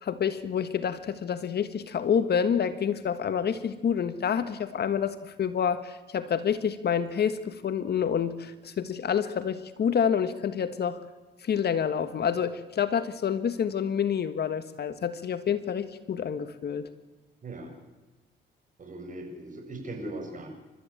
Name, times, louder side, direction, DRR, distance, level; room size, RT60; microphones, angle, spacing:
voice 1, 0.0-11.0 11.4-16.9, left 7 dB, 55° left, 11 dB, 1.6 m, -28 dB
voice 2, 18.8-20.5, right 1 dB, 40° right, 3 dB, 7.1 m, -39 dB
29.5 x 13.5 x 9.0 m, 1.2 s
cardioid pair, 90°, 20 cm